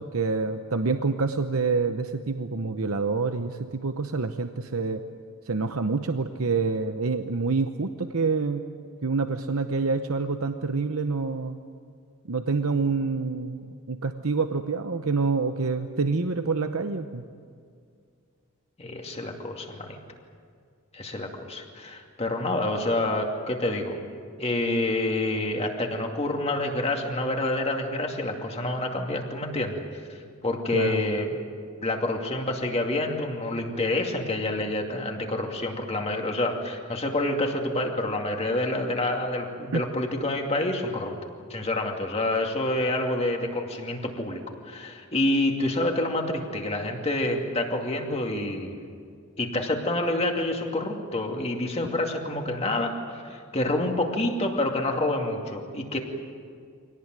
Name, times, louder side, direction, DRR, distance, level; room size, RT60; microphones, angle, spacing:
voice 1, 0.0-5.0 5.5-8.6 9.0-11.6 12.3-17.2 30.7-31.0 39.7-39.8, right 4 dB, 75° right, 8 dB, 0.9 m, -27 dB
voice 2, 18.8-20.0 20.9-24.0 24.4-29.8 30.4-31.3 31.8-41.1 41.5-48.8 49.4-53.0 53.2-56.0, left 2 dB, 30° left, 2 dB, 2.4 m, -28 dB
24.5 x 18.5 x 9.2 m, 2.2 s
head